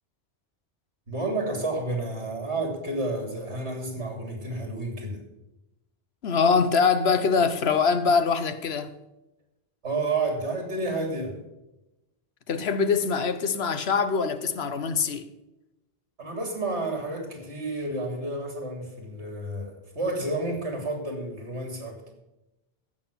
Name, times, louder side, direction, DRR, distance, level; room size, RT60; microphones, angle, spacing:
voice 1, 1.1-5.2 9.8-11.4 16.2-22.0, right 2 dB, 75° right, 3.4 m, -30 dB
voice 2, 6.2-8.9 12.5-15.3, left 5 dB, 65° left, 1.1 m, -23 dB
15.0 x 6.5 x 7.1 m
omnidirectional pair, 1.2 m